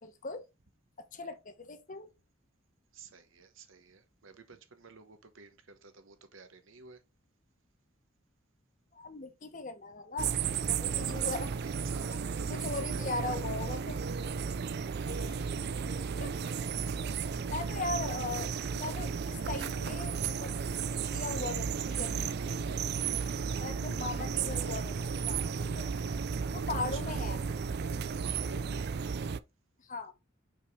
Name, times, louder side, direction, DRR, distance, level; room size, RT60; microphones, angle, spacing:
voice 1, 0.0-0.4 1.0-2.1 8.9-11.5 12.5-14.0 15.1-15.4 16.2-16.3 16.6-16.7 17.5-20.5 21.0-22.3 23.6-25.9 26.4-27.4 29.8-30.1, left 3 dB, 40° left, 1.1 m, -39 dB
voice 2, 2.9-7.0 11.6-13.4 14.7-15.4 26.6-27.2 28.2-28.9, right 4 dB, 70° right, 1.1 m, -52 dB
sound 1, 10.2-29.4, right 6 dB, 55° right, 0.4 m, -34 dB
5.5 x 5.0 x 3.5 m
head